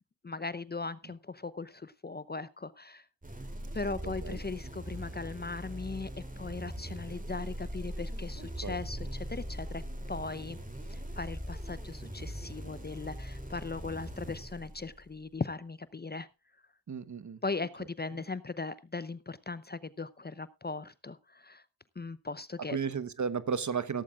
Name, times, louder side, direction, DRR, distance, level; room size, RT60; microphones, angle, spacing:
voice 1, 0.2-3.0 3.7-6.1 6.4-9.8 10.1-10.6 10.9-16.3 17.4-21.6 22.0-22.8, left 3 dB, 25° left, 16 dB, 0.7 m, -38 dB
sound 1, 3.2-15.2, equal, 20° right, 3.0 m, -41 dB
voice 2, 3.8-4.4 8.4-8.8 16.9-17.4 22.7-24.0, right 6 dB, 40° right, 15 dB, 1.2 m, -34 dB
16.0 x 13.5 x 2.4 m, 0.26 s
supercardioid pair, 50°, 43 cm